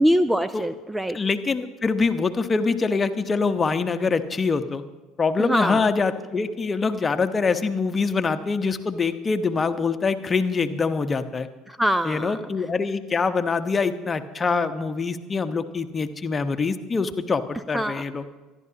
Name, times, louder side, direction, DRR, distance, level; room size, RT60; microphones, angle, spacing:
voice 1, 0.0-1.2 5.4-5.9 11.7-12.4 17.7-18.0, equal, 5° right, 13 dB, 0.5 m, -23 dB
voice 2, 1.1-4.8 5.2-11.5 12.0-18.2, left 4 dB, 25° left, 9 dB, 1.1 m, -24 dB
25.5 x 11.5 x 2.9 m, 1.2 s
hypercardioid pair, 65°, 0 cm